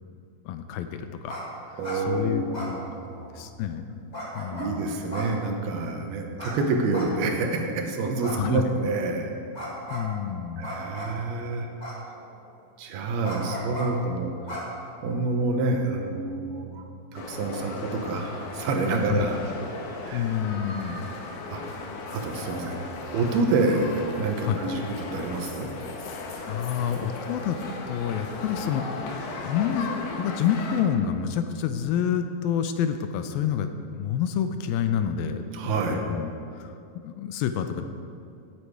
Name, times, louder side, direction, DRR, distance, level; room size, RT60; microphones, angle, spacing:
voice 1, 0.5-1.4 1.7-2.4 3.3-3.9 4.3-5.0 8.3-8.6 9.9-10.7 19.1-19.2 20.1-21.1 24.4-24.6 26.5-27.6 27.9-29.2 29.4-33.7 33.9-37.8, left 8 dB, 85° left, 8 dB, 2.3 m, -28 dB
sound 1, 1.3-1.4 1.7-2.0 2.5-3.3 4.1-4.7 5.1-5.8 6.4-6.5 6.9-7.5 8.2-8.9 9.5-10.1 10.6-11.2 11.8-12.4 13.2-13.9 14.5-15.2, equal, 20° left, 1.3 m, -36 dB
voice 2, 1.8-3.5 4.5-9.3 10.6-11.7 12.8-14.3 15.0-16.8 17.1-19.4 20.0-20.3 21.5-21.6 22.1-22.8 23.1-25.7 35.5-36.0, right 3 dB, 80° right, 3 dB, 3.0 m, -27 dB
sound 2, 17.1-30.8, left 3 dB, 70° left, 2.4 m, -36 dB
16.0 x 8.5 x 4.7 m, 2.5 s
omnidirectional pair, 4.4 m